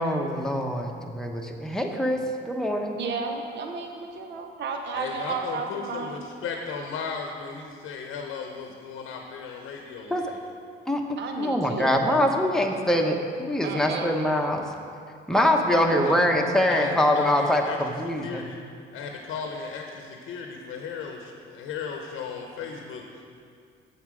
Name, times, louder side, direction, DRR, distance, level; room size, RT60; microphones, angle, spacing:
voice 1, 0.0-3.0 10.1-10.2 10.9-11.0 11.4-14.6 15.3-18.4, left 1 dB, 5° left, 1 dB, 0.9 m, -24 dB
voice 2, 2.9-6.3 11.2-12.2 12.7-13.1 13.6-14.2 15.7-16.1, right 4 dB, 65° right, 3 dB, 0.8 m, -33 dB
voice 3, 4.9-10.4 15.9-16.1 16.7-17.8 18.2-18.6 18.9-23.2, left 5 dB, 90° left, 2 dB, 0.8 m, -35 dB
8.2 x 7.2 x 5.0 m, 2.3 s
cardioid pair, 90°, 20 cm